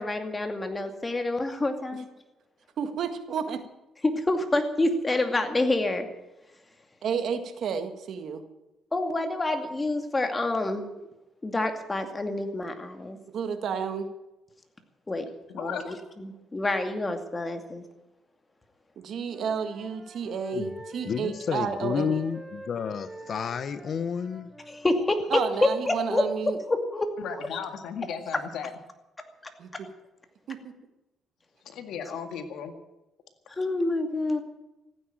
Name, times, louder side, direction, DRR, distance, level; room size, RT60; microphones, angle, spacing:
voice 1, 0.0-2.1 4.0-6.1 8.9-11.1 11.4-13.2 15.1-15.3 15.5-17.8 24.7-25.3 25.6-26.2 26.7-27.4 33.6-34.4, left 2 dB, 20° left, 2.4 m, -27 dB
voice 2, 2.8-3.6 7.0-8.4 13.3-14.1 19.0-22.3 25.3-26.6 29.6-29.9 30.5-30.7, right 6 dB, 65° right, 1.9 m, -31 dB
voice 3, 15.5-15.9 27.2-28.7 31.7-32.7, left 7 dB, 80° left, 1.9 m, -36 dB
Wind instrument woodwind instrument, 19.2-24.9, right 1 dB, 10° right, 2.9 m, -46 dB
voice 4, 21.1-24.5, left 7 dB, 55° left, 0.8 m, -30 dB
15.5 x 9.5 x 9.0 m
cardioid pair, 90°, 0 cm